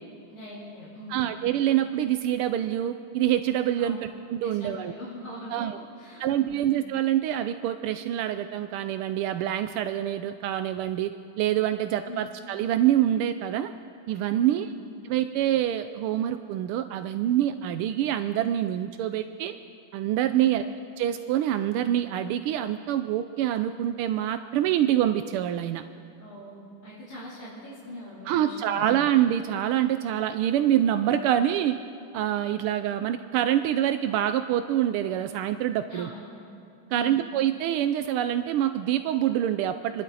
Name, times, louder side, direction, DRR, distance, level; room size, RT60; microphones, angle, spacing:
voice 1, 0.3-1.3 3.8-4.1 4.4-6.7 12.1-12.3 14.4-14.8 20.3-20.7 26.2-28.9 35.9-36.3 36.9-37.2, equal, 45° left, -11 dB, 4.1 m, -42 dB
voice 2, 1.1-4.9 5.5-5.8 6.2-11.1 11.4-13.7 14.1-14.7 15.1-19.5 19.9-20.6 21.0-25.8 28.3-31.7 32.1-36.1 36.9-40.0, right 11 dB, 85° right, 9 dB, 1.5 m, -26 dB
29.0 x 11.5 x 4.1 m, 2.7 s
omnidirectional pair, 2.4 m